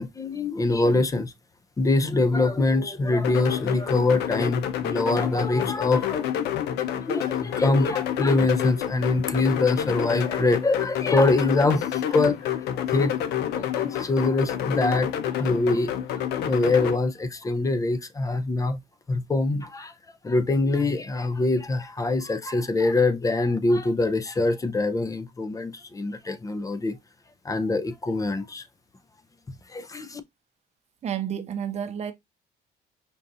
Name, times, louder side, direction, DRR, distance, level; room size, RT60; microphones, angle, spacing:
voice 1, 0.0-1.3 1.8-6.2 7.0-13.1 13.5-15.9 16.4-18.8 19.1-19.9 20.2-27.0 27.4-28.6 29.7-30.2, left 2 dB, 20° left, 0.5 m, -24 dB
sound 1, 3.2-17.0, left 10 dB, 80° left, 0.6 m, -28 dB
voice 2, 31.0-32.1, right 8 dB, 40° right, 0.7 m, -30 dB
5.2 x 2.4 x 2.6 m
cardioid pair, 110°, 17 cm